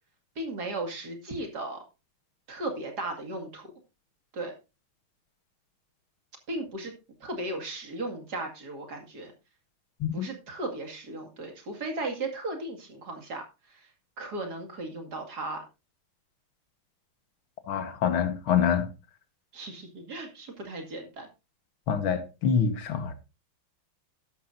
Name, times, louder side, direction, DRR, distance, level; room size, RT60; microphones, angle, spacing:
voice 1, 0.4-1.8 2.5-3.7 4.3-4.5 6.5-6.9 7.2-9.3 10.1-13.8 14.2-15.6 19.5-21.3, right 2 dB, 50° right, 2.7 m, -36 dB
voice 2, 17.7-18.9 21.9-23.1, left 7 dB, 75° left, 2.1 m, -26 dB
12.0 x 12.0 x 2.6 m
omnidirectional pair, 2.3 m